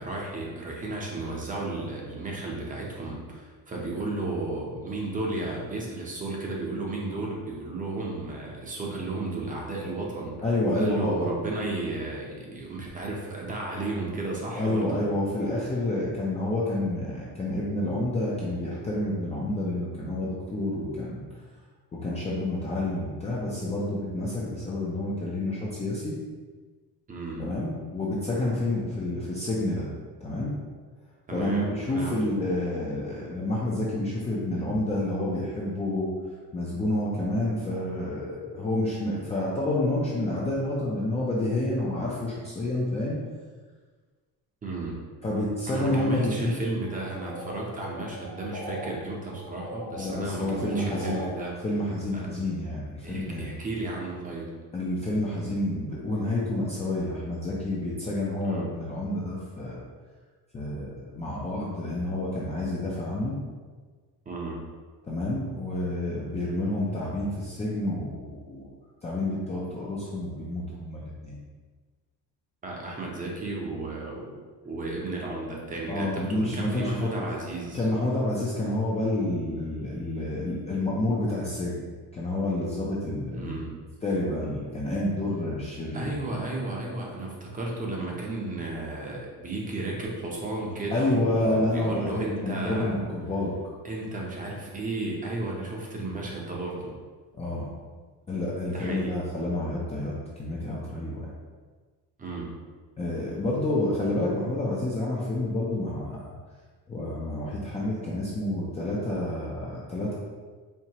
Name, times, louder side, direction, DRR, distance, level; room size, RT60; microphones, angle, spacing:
voice 1, 0.0-10.4 10.7-15.1 27.1-27.5 31.3-32.2 44.6-45.0 45.7-51.5 52.1-52.2 53.0-54.5 58.4-58.7 64.3-64.6 72.6-74.3 74.6-77.8 83.3-83.8 85.9-93.0 93.8-96.9 98.6-99.2 102.2-102.5, right 2 dB, 20° right, -2 dB, 0.7 m, -33 dB
voice 2, 10.4-11.1 14.5-21.2 21.9-26.1 27.4-29.9 30.2-30.6 31.3-36.1 36.5-43.2 45.2-46.6 50.0-53.5 54.7-59.8 60.5-63.4 65.1-68.7 69.0-71.4 75.9-77.3 77.7-81.8 82.1-83.6 84.0-86.1 90.9-93.6 97.3-97.6 98.3-101.3 103.0-106.3 106.9-110.1, left 1 dB, 20° left, -6 dB, 0.4 m, -29 dB
sound 1, 46.8-48.9 49.2-51.3, left 1 dB, 40° left, 1.0 m, -40 dB
4.4 x 2.8 x 2.8 m, 1.4 s
cardioid pair, 155°, 38 cm